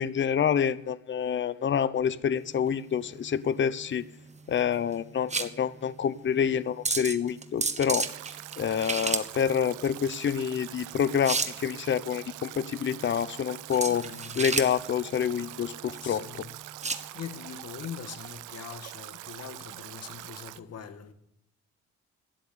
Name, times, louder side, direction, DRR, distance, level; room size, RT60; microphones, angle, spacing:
voice 1, 0.0-4.0 4.5-8.1 8.6-14.1 14.4-16.2, left 8 dB, 40° left, 0.7 m, -27 dB
sound 1, 2.4-17.1, right 4 dB, 25° right, 1.3 m, -34 dB
Stream / Drip / Trickle dribble, 7.9-20.6, right 17 dB, 85° right, 0.5 m, -44 dB
voice 2, 13.9-14.4 16.0-16.5 17.1-21.1, left 7 dB, 55° left, 1.6 m, -42 dB
12.5 x 10.0 x 7.0 m
cardioid pair, 90°, 30 cm